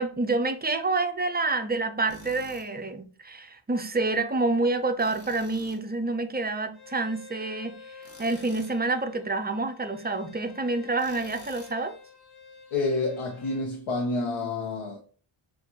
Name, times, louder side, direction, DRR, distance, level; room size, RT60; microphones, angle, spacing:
voice 1, 0.0-7.8 8.2-12.0, right 3 dB, 20° right, 0.4 m, -28 dB
Tools, 2.1-2.7 5.0-5.8 8.0-8.8 11.0-11.8, left 1 dB, 30° left, 1.3 m, -49 dB
Bowed string instrument, 6.7-13.7, left 5 dB, 50° left, 1.1 m, -49 dB
voice 2, 12.7-15.0, left 3 dB, 75° left, 1.0 m, -28 dB
7.2 x 2.5 x 2.6 m
wide cardioid pair, 165°, 49 cm